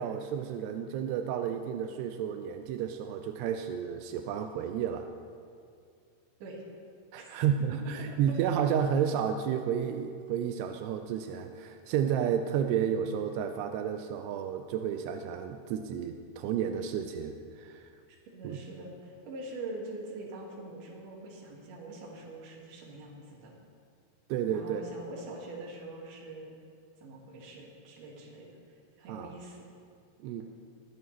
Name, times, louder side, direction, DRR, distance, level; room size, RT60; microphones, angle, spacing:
voice 1, 0.0-5.1 7.1-17.9 18.4-18.6 24.3-24.8 29.1-29.3 30.2-30.4, right 8 dB, 85° right, 6 dB, 2.6 m, -31 dB
voice 2, 18.3-23.5 24.5-26.5 27.0-28.5 29.0-29.7, right 2 dB, 60° right, -1 dB, 2.9 m, -44 dB
21.5 x 8.7 x 3.1 m, 2.3 s
omnidirectional pair, 4.7 m